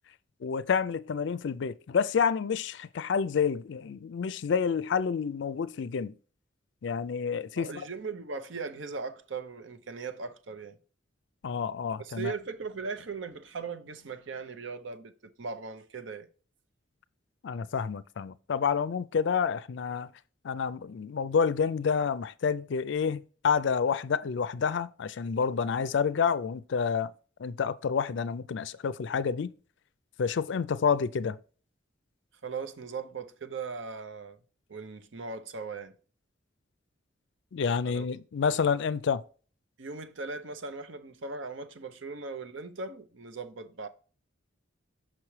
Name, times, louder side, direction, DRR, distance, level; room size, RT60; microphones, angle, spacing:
voice 1, 0.4-6.1 6.8-7.9 11.4-12.3 17.4-20.1 20.4-27.1 27.4-29.5 30.2-31.4 37.5-39.2, left 6 dB, 65° left, 0.4 m, -29 dB
voice 2, 7.6-10.8 12.0-16.3 32.4-34.4 34.7-36.0 37.8-38.1 39.8-43.9, right 4 dB, 75° right, 0.7 m, -39 dB
6.0 x 5.9 x 3.2 m
head